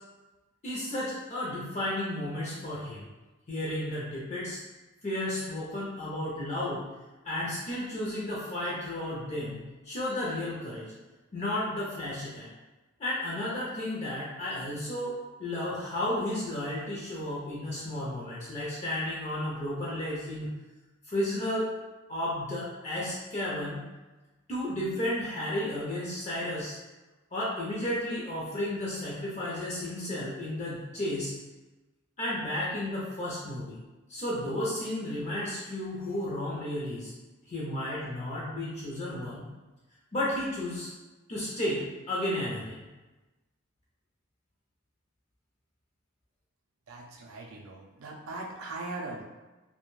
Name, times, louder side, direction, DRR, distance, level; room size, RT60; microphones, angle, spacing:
voice 1, 0.6-3.1 3.5-4.6 5.0-6.9 7.2-10.9 11.3-12.5 13.0-15.1 15.4-20.5 21.0-21.7 22.1-23.8 24.5-26.8 27.3-31.4 32.2-33.8 34.1-37.1 37.5-39.4 40.1-40.9 41.3-42.9, left 1 dB, 30° left, -6 dB, 0.5 m, -33 dB
voice 2, 46.9-49.2, right 2 dB, 75° right, 0 dB, 0.4 m, -40 dB
2.4 x 2.1 x 3.0 m, 1.2 s
head